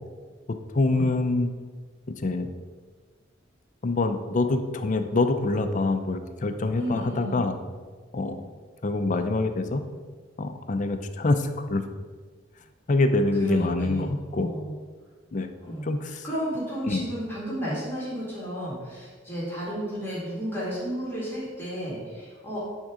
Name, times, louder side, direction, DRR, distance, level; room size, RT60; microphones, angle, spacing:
voice 1, 0.7-1.5 2.2-2.5 3.8-7.6 8.1-8.4 8.8-9.8 10.4-11.8 12.9-14.5 15.3-15.5 15.8-16.2 16.9-17.1, left 2 dB, 40° left, 8 dB, 0.5 m, -25 dB
voice 2, 6.8-7.5 13.4-14.8 15.6-15.9 16.2-22.6, equal, 10° left, -9 dB, 2.1 m, -32 dB
9.1 x 3.6 x 4.9 m, 1.5 s
head